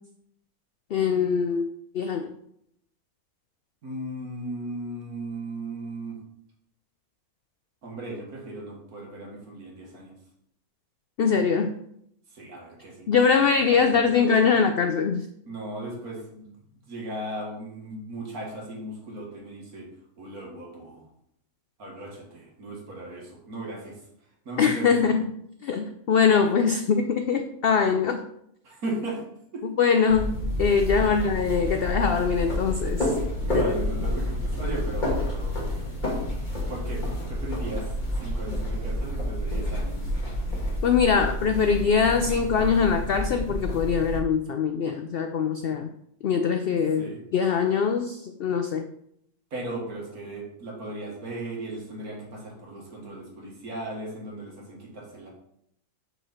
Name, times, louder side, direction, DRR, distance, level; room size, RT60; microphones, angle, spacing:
voice 1, 0.9-2.3 11.2-11.7 13.1-15.3 24.6-25.2 25.6-28.2 29.8-33.1 33.5-33.7 40.8-45.9 46.2-47.1 47.3-48.9, left 6 dB, 80° left, 7 dB, 0.5 m, -23 dB
voice 2, 3.8-6.2 7.8-10.1 12.3-14.3 15.5-16.5 16.9-19.9 20.2-21.0 21.8-24.0 24.5-25.0 28.6-29.2 29.5-29.7 31.0-31.1 33.4-35.6 36.7-37.9 38.2-40.1 47.0-47.2 49.5-55.3, right 1 dB, 80° right, -2 dB, 2.2 m, -36 dB
sound 1, 30.1-44.2, left 1 dB, 30° left, 1.8 m, -29 dB
6.1 x 5.4 x 4.3 m, 0.74 s
omnidirectional pair, 1.6 m